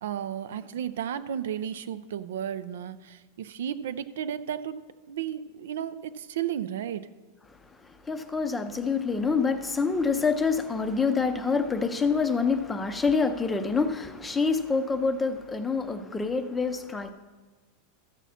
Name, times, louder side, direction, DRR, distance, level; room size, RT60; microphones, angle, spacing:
voice 1, 0.0-4.8 5.1-7.1, right 9 dB, 90° right, 0.5 m, -33 dB
voice 2, 8.1-17.1, left 4 dB, 10° left, 0.5 m, -26 dB
14.0 x 7.2 x 4.2 m
supercardioid pair, 170°, 0 cm